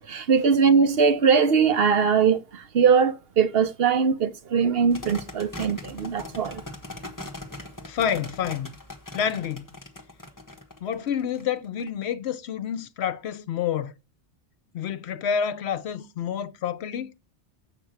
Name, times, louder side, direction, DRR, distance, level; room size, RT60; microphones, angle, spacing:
voice 1, 0.1-6.6, right 6 dB, 60° right, 0.9 m, -21 dB
sound 1, 4.9-11.9, left 2 dB, 15° left, 1.3 m, -40 dB
voice 2, 7.9-8.7 9.1-9.7 10.8-13.9 14.7-17.1, left 8 dB, 70° left, 0.9 m, -28 dB
7.7 x 5.9 x 7.8 m
omnidirectional pair, 1.2 m